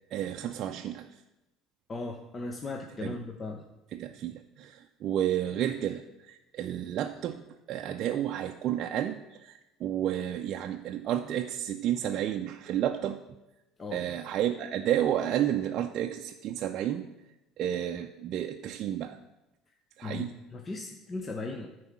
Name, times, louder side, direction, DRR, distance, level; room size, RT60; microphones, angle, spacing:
voice 1, 0.1-1.1 3.0-3.2 3.9-13.2 13.9-17.1 17.6-19.2 20.0-20.4, right 11 dB, 50° right, 4 dB, 0.4 m, -31 dB
voice 2, 1.9-3.6 13.8-14.0 20.0-21.7, left 3 dB, 25° left, 4 dB, 0.7 m, -37 dB
9.7 x 4.7 x 7.2 m, 0.99 s
supercardioid pair, 110°, 0 cm